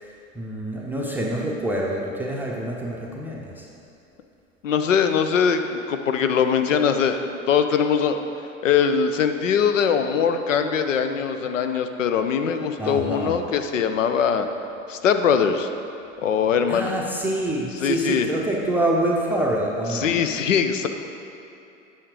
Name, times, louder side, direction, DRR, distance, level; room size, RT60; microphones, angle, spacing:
voice 1, 0.0-3.7 12.8-13.4 16.7-20.1, right 1 dB, 5° right, -3 dB, 0.6 m, -26 dB
voice 2, 4.6-8.2 8.6-14.5 14.9-15.7 16.2-16.9 17.8-18.3 19.9-20.9, left 7 dB, 70° left, 7 dB, 0.7 m, -22 dB
8.6 x 5.7 x 4.9 m, 2.7 s
figure-of-eight pair, 80°, 39 cm